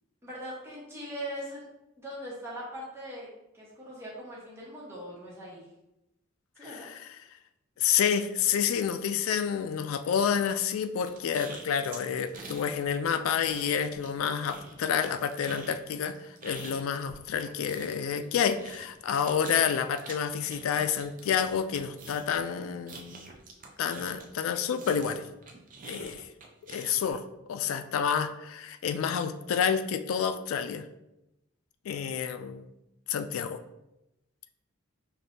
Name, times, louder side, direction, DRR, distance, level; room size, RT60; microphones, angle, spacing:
voice 1, 0.2-1.6 2.0-3.3 3.5-5.7 6.6-6.9, equal, 15° right, -6 dB, 1.1 m, -40 dB
voice 2, 6.7-7.1 7.8-23.3 23.8-25.3 25.9-26.3 26.7-30.9 31.9-32.7 33.1-33.6, left 7 dB, 90° left, 10 dB, 0.3 m, -29 dB
sound 1, 11.1-12.7 13.0-14.2 14.4-24.4 24.8-27.2, right 3 dB, 40° right, 0.5 m, -46 dB
5.2 x 2.6 x 2.7 m, 0.91 s
head